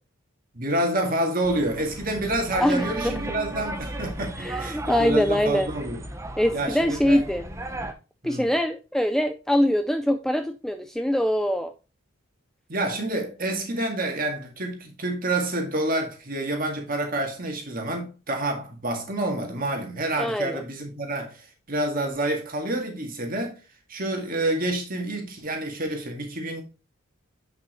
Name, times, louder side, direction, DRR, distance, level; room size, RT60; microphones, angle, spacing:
voice 1, 0.5-6.0 6.5-7.2 8.2-8.5 12.7-23.6 23.9-26.6, right 1 dB, 40° right, 1.9 m, -28 dB
sound 1, 1.4-7.9, right 1 dB, 15° right, 0.7 m, -35 dB
voice 2, 2.6-3.1 4.4-5.7 6.4-7.4 8.2-11.7 20.2-20.6, equal, ahead, 0.3 m, -23 dB
9.0 x 5.5 x 3.1 m
head